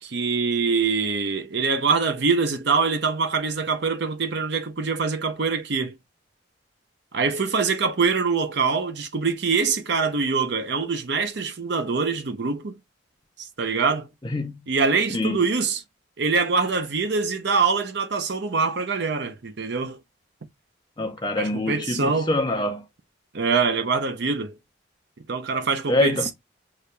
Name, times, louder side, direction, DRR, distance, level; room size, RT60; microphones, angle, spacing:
voice 1, 0.0-6.0 7.1-12.8 13.4-14.1 14.7-15.8 16.2-20.0 21.4-22.3 23.3-24.6 25.3-26.3, right 4 dB, 55° right, 0.6 m, -24 dB
voice 2, 14.2-14.6 15.1-15.4 21.0-22.8 25.9-26.3, left 2 dB, 20° left, 0.6 m, -25 dB
6.7 x 2.8 x 2.2 m
head